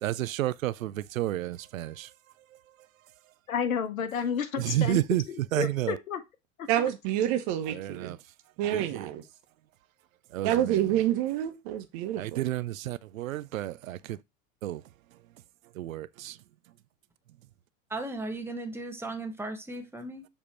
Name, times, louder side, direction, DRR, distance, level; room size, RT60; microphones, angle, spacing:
voice 1, 0.0-2.1 4.6-5.2 5.5-6.0 7.7-8.2 8.7-9.1 10.3-11.0 12.2-14.2 14.6-14.8 15.7-16.4, right 14 dB, 75° right, 0.6 m, -31 dB
voice 2, 3.5-5.0 5.3-6.2 6.6-6.9, left 7 dB, 80° left, 1.1 m, -31 dB
voice 3, 6.7-8.1 8.6-9.2 10.4-12.4, right 11 dB, 50° right, 1.3 m, -28 dB
voice 4, 17.9-20.3, right 2 dB, 5° right, 1.3 m, -36 dB
7.1 x 3.6 x 4.3 m
hypercardioid pair, 90°, 40 cm